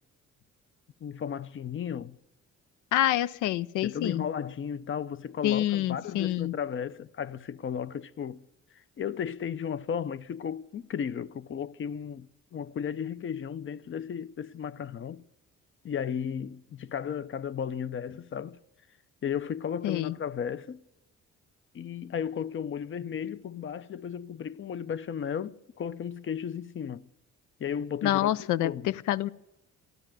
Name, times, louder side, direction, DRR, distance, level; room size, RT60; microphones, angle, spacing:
voice 1, 1.0-2.2 3.8-8.4 9.0-15.2 15.8-18.6 19.2-20.8 21.7-27.1 27.6-28.9, left 8 dB, 40° left, 0.6 m, -34 dB
voice 2, 2.9-4.2 5.4-6.5 19.8-20.1 28.0-29.3, left 13 dB, 85° left, 0.5 m, -27 dB
13.5 x 12.0 x 8.9 m
cardioid pair, 90°, 30 cm